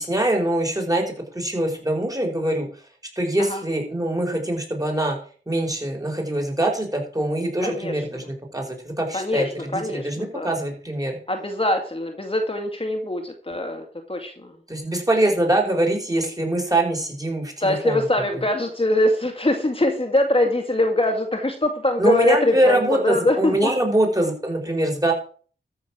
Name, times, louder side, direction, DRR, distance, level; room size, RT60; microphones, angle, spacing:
voice 1, 0.0-2.7 3.1-5.2 5.5-11.1 14.7-18.1 22.0-25.1, right 1 dB, 20° right, 2 dB, 4.8 m, -23 dB
voice 2, 7.6-7.9 9.1-10.5 11.3-14.5 17.6-23.7, left 1 dB, 25° left, 4 dB, 2.2 m, -23 dB
13.5 x 6.8 x 6.2 m, 0.43 s
wide cardioid pair, 65°, 20 cm